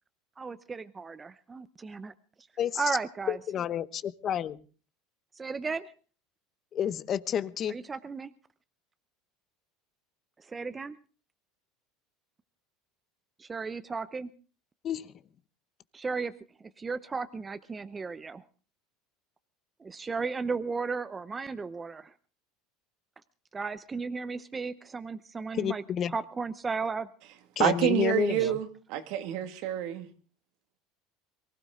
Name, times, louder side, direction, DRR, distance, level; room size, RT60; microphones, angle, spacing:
voice 1, 0.4-2.1 2.8-3.4 5.4-5.9 7.7-8.3 10.4-11.0 13.4-14.3 15.9-16.3 16.6-18.4 19.8-22.1 23.5-25.8 26.1-27.1 28.4-28.5, right 4 dB, 20° right, 0.8 m, -35 dB
voice 2, 3.3-4.6 6.7-7.8 14.8-15.1 25.5-26.1 27.6-28.6, left 9 dB, 40° left, 0.9 m, -30 dB
voice 3, 27.6-30.1, right 12 dB, 65° right, 2.1 m, -28 dB
23.0 x 16.0 x 3.7 m
supercardioid pair, 125°, 0 cm